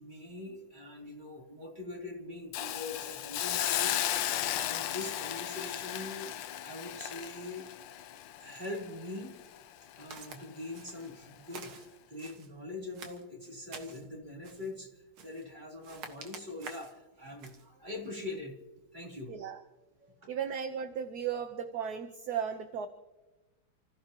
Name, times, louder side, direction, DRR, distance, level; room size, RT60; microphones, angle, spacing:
voice 1, 0.0-7.7 8.4-9.4 10.0-11.7 12.1-14.9 15.2-18.5 18.9-19.3 20.0-20.3, left 2 dB, 20° right, -2 dB, 3.7 m, -43 dB
Hiss, 2.5-9.6 10.0-10.1, left 12 dB, 70° left, 1.2 m, -35 dB
Walk footsteps, 10.1-10.4 10.7-11.1 11.5-12.5 12.9-14.1 14.4-14.7 15.2-15.5 15.8-17.0 17.4-17.7, right 5 dB, 85° right, 2.4 m, -48 dB
voice 2, 19.3-19.6 20.3-22.9, right 8 dB, 55° right, 7 dB, 1.3 m, -35 dB
29.5 x 16.0 x 3.0 m, 1.1 s
omnidirectional pair, 2.3 m